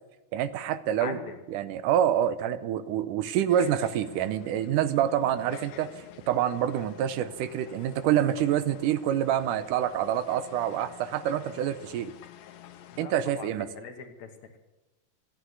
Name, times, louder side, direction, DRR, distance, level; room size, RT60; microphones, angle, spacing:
voice 1, 0.3-1.2 1.5-5.9 6.3-12.1 13.0-13.7, right 10 dB, 85° right, 13 dB, 2.3 m, -27 dB
voice 2, 1.0-1.4 12.9-14.6, left 6 dB, 65° left, 5 dB, 2.5 m, -41 dB
sound 1, 3.5-13.1, left 10 dB, 90° left, 2.6 m, -49 dB
14.5 x 9.6 x 9.5 m, 1.1 s
omnidirectional pair, 3.7 m